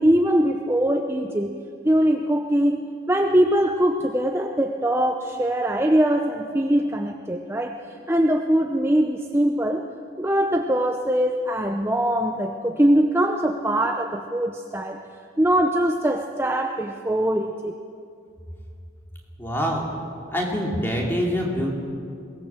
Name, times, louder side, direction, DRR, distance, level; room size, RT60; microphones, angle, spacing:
voice 1, 0.0-1.5 1.8-7.8 8.1-9.9 10.2-15.0 15.4-17.8, right 1 dB, 15° right, 4 dB, 0.7 m, -22 dB
voice 2, 19.4-19.9 20.3-21.7, equal, 10° left, -1 dB, 3.1 m, -25 dB
22.5 x 18.5 x 7.4 m, 2.3 s
head